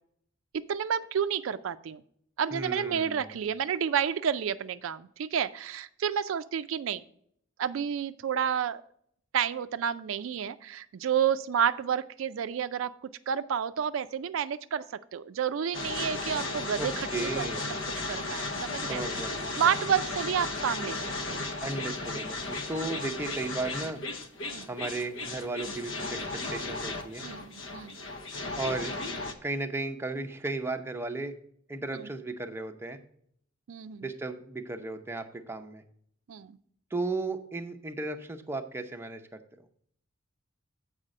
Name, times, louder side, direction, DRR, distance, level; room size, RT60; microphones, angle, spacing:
voice 1, 0.5-2.0 2.4-7.0 7.6-8.8 9.3-14.9 15.1-17.5 18.1-19.0 19.6-21.0 21.3-21.4 24.5-24.7 27.2-28.0 31.9-32.1 33.7-34.0 36.3-36.6, right 8 dB, 80° right, 13 dB, 0.4 m, -30 dB
voice 2, 2.5-3.3 16.8-17.7 18.8-19.5 21.6-24.0 24.7-27.3 28.6-28.9 29.4-31.3 31.7-33.0 34.0-35.8 36.9-39.4, right 2 dB, 10° right, 5 dB, 0.6 m, -35 dB
sound 1, 15.7-29.3, left 2 dB, 75° left, 0.9 m, -35 dB
7.4 x 4.9 x 6.4 m, 0.67 s
head